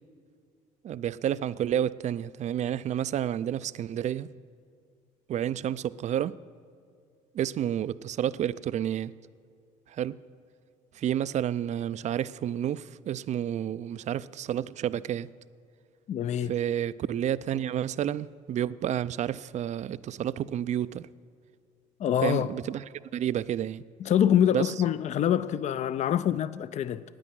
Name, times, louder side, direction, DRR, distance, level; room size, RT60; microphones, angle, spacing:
voice 1, 0.8-4.3 5.3-6.4 7.3-9.1 9.9-10.2 10.9-15.3 16.4-21.1 22.2-22.8 23.1-23.8 24.5-24.7, right 10 dB, 45° right, 0.4 m, -30 dB
voice 2, 16.1-16.5 22.0-22.5 24.0-27.0, left 10 dB, 45° left, 0.5 m, -25 dB
10.0 x 9.1 x 9.2 m
supercardioid pair, 70°, 16 cm